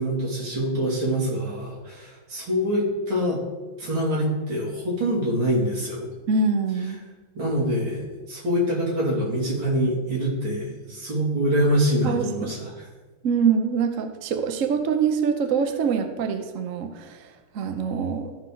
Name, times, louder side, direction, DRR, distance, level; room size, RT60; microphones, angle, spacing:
voice 1, 0.0-3.4 3.8-6.1 7.4-8.0 8.3-12.7, equal, 85° right, -4 dB, 3.7 m, -25 dB
voice 2, 6.3-7.0 12.0-12.5 13.2-18.4, right 6 dB, 55° right, 6 dB, 1.0 m, -24 dB
14.0 x 6.2 x 3.9 m, 1.3 s
omnidirectional pair, 2.2 m